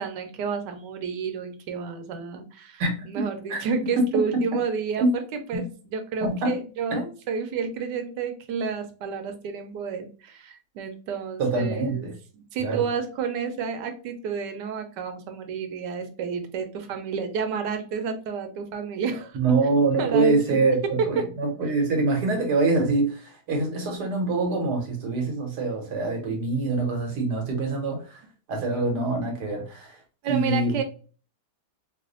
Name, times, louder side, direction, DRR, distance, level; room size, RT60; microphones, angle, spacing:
voice 1, 0.0-5.2 5.5-12.1 12.3-19.4 20.0-20.6 30.2-30.8, right 6 dB, 90° right, 7 dB, 1.3 m, -30 dB
voice 2, 2.8-3.6 5.0-5.1 5.5-5.6 6.2-6.5 6.9-7.0 11.4-12.1 12.6-12.8 19.3-28.2 28.5-30.0 30.3-30.8, right 3 dB, 70° right, 2 dB, 1.5 m, -25 dB
3.2 x 2.0 x 3.7 m, 0.37 s
omnidirectional pair, 1.8 m